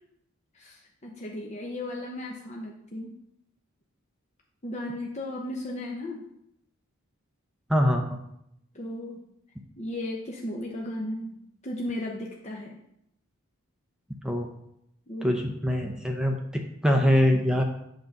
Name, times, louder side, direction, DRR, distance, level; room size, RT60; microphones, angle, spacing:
voice 1, 0.5-3.1 4.6-6.2 8.7-9.2 9.8-12.8 15.1-15.4, left 1 dB, 30° left, -2 dB, 0.8 m, -35 dB
voice 2, 7.7-8.2 14.2-14.5 15.2-17.6, equal, 5° right, 2 dB, 0.6 m, -24 dB
7.6 x 3.9 x 5.9 m, 0.77 s
head